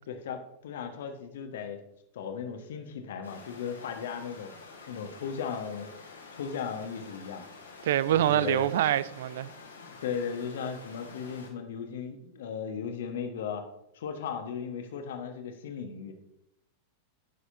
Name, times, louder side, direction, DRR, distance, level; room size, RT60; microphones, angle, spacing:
voice 1, 0.1-1.8 2.1-4.5 4.9-5.9 6.3-7.4 8.1-8.7 9.8-13.7 13.9-16.1, left 7 dB, 60° left, 1.3 m, -36 dB
sound 1, 3.2-11.5, left 4 dB, 75° left, 2.1 m, -49 dB
voice 2, 7.8-9.5, right 12 dB, 55° right, 0.4 m, -25 dB
16.0 x 6.4 x 2.7 m
figure-of-eight pair, 90°, 0 cm